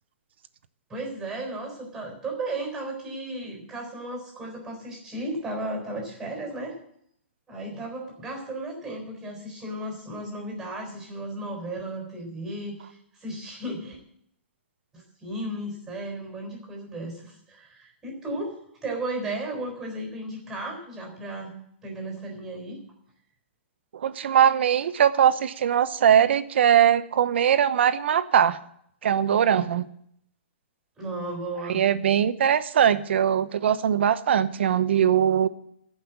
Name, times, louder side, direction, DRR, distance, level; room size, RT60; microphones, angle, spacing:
voice 1, 0.9-6.8 7.5-14.0 14.9-21.5 21.8-22.8 31.0-31.8, right 1 dB, 10° right, 2 dB, 4.1 m, -34 dB
voice 2, 23.9-28.6 29.0-29.9 31.7-35.5, right 9 dB, 65° right, 12 dB, 0.9 m, -21 dB
14.0 x 5.7 x 8.3 m, 0.68 s
hypercardioid pair, 160°, 6 cm